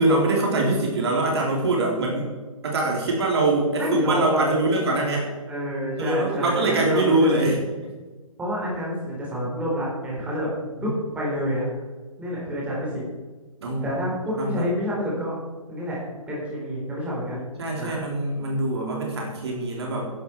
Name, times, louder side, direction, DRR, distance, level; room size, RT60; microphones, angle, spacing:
voice 1, 0.0-2.3 2.6-5.3 6.0-7.6 10.8-10.9 13.6-14.0 14.4-14.6 17.3-20.1, right 2 dB, 50° right, -1 dB, 3.6 m, -23 dB
voice 2, 3.8-4.8 5.5-7.4 8.4-10.5 10.8-11.7 12.2-13.0 13.8-15.4 15.7-16.0 16.3-17.4 17.8-18.0, equal, 5° right, -5 dB, 4.2 m, -28 dB
15.0 x 11.0 x 4.7 m, 1.3 s
figure-of-eight pair, 135°, 18 cm